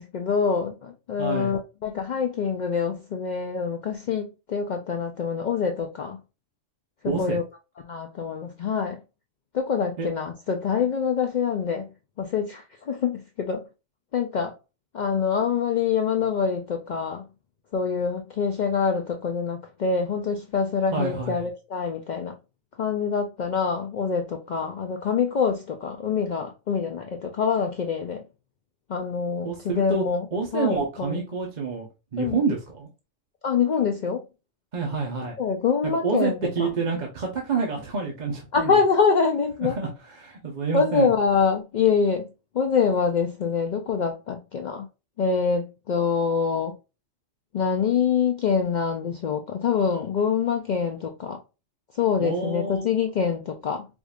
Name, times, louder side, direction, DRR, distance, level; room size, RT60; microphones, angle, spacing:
voice 1, 0.0-6.2 7.0-7.4 7.8-9.0 9.5-11.9 12.2-13.6 14.1-14.5 14.9-17.2 17.7-22.4 22.8-28.2 28.9-30.3 30.5-31.2 32.2-32.4 33.4-34.2 35.4-36.7 38.5-39.7 40.7-42.3 42.5-44.9 45.2-46.7 47.5-51.4 51.9-53.9, left 6 dB, 75° left, 0.4 m, -25 dB
voice 2, 1.2-1.5 7.0-7.4 10.0-10.1 20.9-21.5 29.4-30.0 30.3-31.9 32.1-32.9 34.7-35.4 36.0-38.7 39.6-39.9 40.2-41.1 52.2-52.9, right 4 dB, 40° right, 0.8 m, -28 dB
4.9 x 2.6 x 2.3 m
omnidirectional pair, 1.4 m